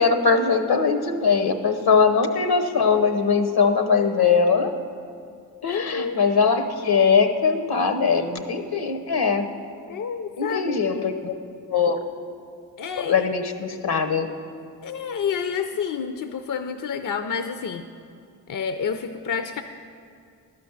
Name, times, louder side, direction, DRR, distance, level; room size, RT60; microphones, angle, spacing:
voice 1, 0.0-4.7 5.6-9.5 10.4-11.3 11.7-12.0 13.0-14.3, left 5 dB, 70° left, 8 dB, 0.9 m, -21 dB
voice 2, 5.6-6.2 9.9-11.2 12.8-13.3 14.8-17.8 18.5-19.6, left 6 dB, 55° left, 8 dB, 0.6 m, -29 dB
12.0 x 5.1 x 7.1 m, 2.4 s
cardioid pair, 40°, 39 cm